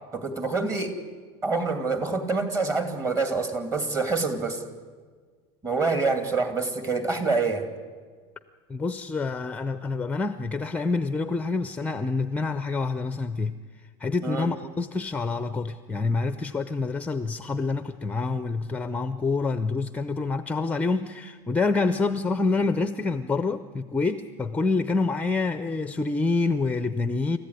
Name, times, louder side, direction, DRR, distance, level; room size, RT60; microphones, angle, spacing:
voice 1, 0.1-1.0 1.4-4.6 5.6-7.6 14.2-14.5, right 3 dB, 25° right, 7 dB, 2.7 m, -26 dB
voice 2, 8.7-13.6 14.0-27.4, left 3 dB, 10° left, 11 dB, 0.6 m, -27 dB
28.5 x 14.5 x 9.8 m, 1.5 s
cardioid pair, 150°, 14 cm